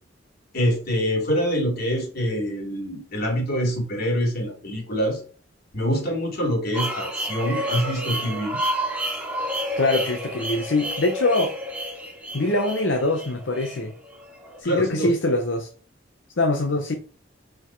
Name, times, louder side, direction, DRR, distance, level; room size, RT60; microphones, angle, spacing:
voice 1, 0.5-5.2 5.7-8.6 14.6-15.1, equal, 55° left, 0 dB, 3.1 m, -25 dB
sound 1, 6.7-14.6, equal, 10° right, 1.9 m, -30 dB
voice 2, 9.8-11.5 12.3-13.9 14.6-15.7 16.4-16.9, left 2 dB, 75° left, 4 dB, 0.9 m, -23 dB
6.1 x 5.0 x 4.6 m, 0.39 s
head